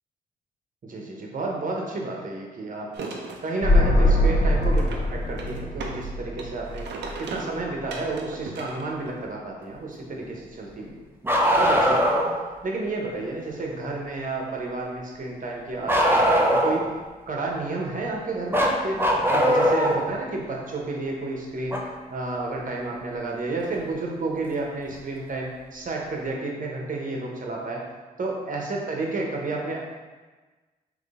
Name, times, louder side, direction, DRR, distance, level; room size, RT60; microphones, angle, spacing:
voice 1, 0.8-3.1 3.4-6.9 7.2-11.0 11.6-12.2 12.6-16.8 17.3-19.0 19.3-21.8 22.1-27.8 28.2-29.8, right 2 dB, 50° right, -1 dB, 1.0 m, -31 dB
sound 1, 2.9-3.5 4.6-6.1 6.3-9.3, right 4 dB, 80° right, 0.6 m, -38 dB
sound 2, 3.6-7.4 7.6-7.7, left 1 dB, 55° left, 1.3 m, -22 dB
Bark, 11.2-12.3 15.9-16.9 18.5-20.0 21.7-21.8 23.7-23.8 24.9-25.0, equal, 10° right, 0.8 m, -20 dB
3.8 x 3.3 x 3.7 m, 1.3 s
supercardioid pair, 55°, 18 cm